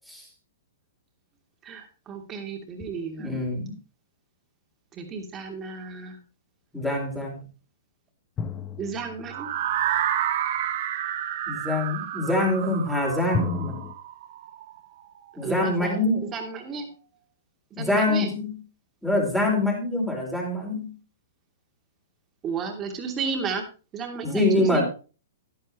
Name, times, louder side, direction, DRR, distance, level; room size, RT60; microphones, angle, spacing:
voice 1, 1.6-3.4 4.9-6.2 8.8-9.5 15.4-16.0 16.3-16.9 17.8-18.3 22.4-23.6 23.9-24.8, right 5 dB, 25° right, 3 dB, 2.8 m, -33 dB
voice 2, 3.2-3.7 6.7-7.4 11.5-13.8 15.4-16.3 17.8-18.6 19.0-21.0 24.2-24.8, left 1 dB, ahead, -1 dB, 4.6 m, -25 dB
sound 1, 8.4-10.0 13.3-13.9, left 6 dB, 20° left, 1.0 m, -32 dB
sound 2, 9.3-15.2, right 10 dB, 55° right, 1.4 m, -30 dB
11.5 x 11.0 x 3.2 m, 0.34 s
hypercardioid pair, 125°, 0 cm